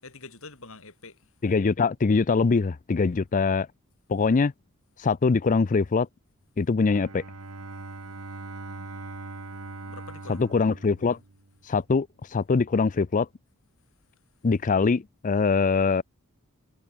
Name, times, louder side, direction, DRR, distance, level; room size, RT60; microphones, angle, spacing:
voice 1, 0.0-1.3 9.8-10.6, left 3 dB, 65° left, 5.0 m, -46 dB
voice 2, 1.4-3.7 4.1-4.5 5.0-6.1 6.6-7.2 10.3-11.2 11.7-12.1 12.3-13.3 14.4-16.0, left 4 dB, 35° left, 0.4 m, -23 dB
Bowed string instrument, 6.7-11.6, right 2 dB, 80° right, 1.9 m, -41 dB
head